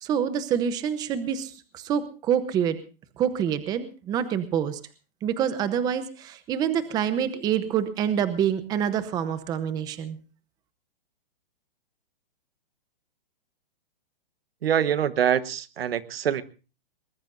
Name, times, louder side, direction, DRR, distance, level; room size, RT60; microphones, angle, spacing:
voice 1, 0.0-2.8 3.2-4.8 5.2-10.2, right 8 dB, 15° right, 12 dB, 0.8 m, -26 dB
voice 2, 14.6-16.4, right 9 dB, 80° right, 14 dB, 1.3 m, -24 dB
22.0 x 20.0 x 2.6 m, 0.34 s
hypercardioid pair, 165°, 29 cm